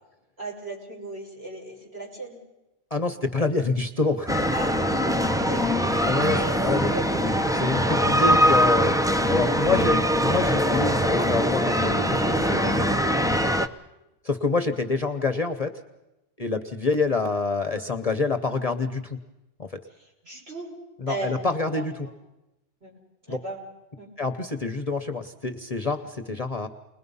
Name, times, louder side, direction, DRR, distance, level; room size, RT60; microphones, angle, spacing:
voice 1, 0.4-2.4 4.5-4.8 5.4-5.6 6.3-6.6 6.9-7.1 7.8-8.3 20.2-20.7 21.1-21.8 22.8-22.9 23.3-23.6 24.0-24.1, right 1 dB, 60° right, -4 dB, 6.2 m, -36 dB
voice 2, 2.9-4.3 6.0-9.0 9.3-12.9 14.2-15.7 16.4-19.2 19.6-19.8 21.0-22.1 23.3-23.4 24.2-26.7, left 3 dB, 35° left, 6 dB, 1.0 m, -27 dB
sound 1, 4.3-13.7, equal, 5° right, 0.4 m, -22 dB
29.5 x 21.0 x 5.5 m, 0.98 s
omnidirectional pair, 1.2 m